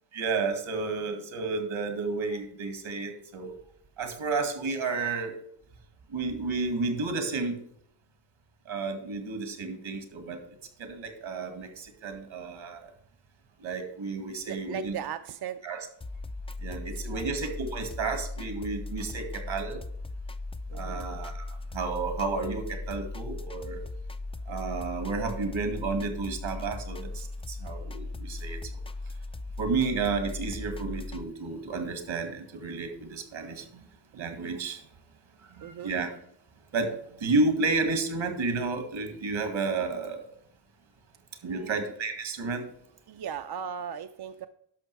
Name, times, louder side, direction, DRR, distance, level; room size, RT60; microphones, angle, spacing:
voice 1, 0.1-3.5 4.0-5.4 6.1-7.6 8.7-10.4 10.8-12.9 13.6-14.9 15.6-15.9 16.6-19.8 20.7-23.8 24.5-28.6 29.6-33.9 34.1-34.8 35.4-36.1 36.7-40.3 41.4-42.6, right 3 dB, 80° right, 6 dB, 2.1 m, -31 dB
voice 2, 14.5-15.6 17.1-17.3 20.7-21.1 34.1-34.2 35.6-35.9 41.5-41.8 43.1-44.5, right 8 dB, 55° right, 9 dB, 0.5 m, -37 dB
sound 1, 16.0-31.2, left 2 dB, 15° left, 0.3 m, -38 dB
11.5 x 6.0 x 4.7 m, 0.69 s
wide cardioid pair, 125°, 47 cm